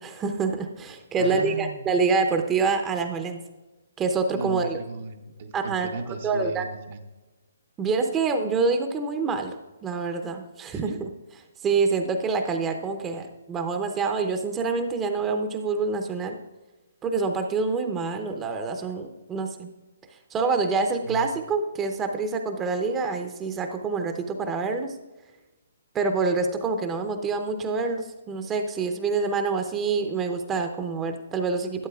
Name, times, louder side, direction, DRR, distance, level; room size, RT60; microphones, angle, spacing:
voice 1, 0.0-3.4 4.0-4.8 5.5-5.9 6.2-6.6 7.8-11.1 11.6-16.4 17.0-19.7 20.3-24.9 25.9-31.9, right 4 dB, 15° right, 6 dB, 0.6 m, -26 dB
voice 2, 1.2-1.9 4.3-7.0 10.8-11.0 21.0-21.3, right 4 dB, 55° right, 4 dB, 0.7 m, -35 dB
11.5 x 8.9 x 2.4 m, 1.1 s
hypercardioid pair, 145°, 0 cm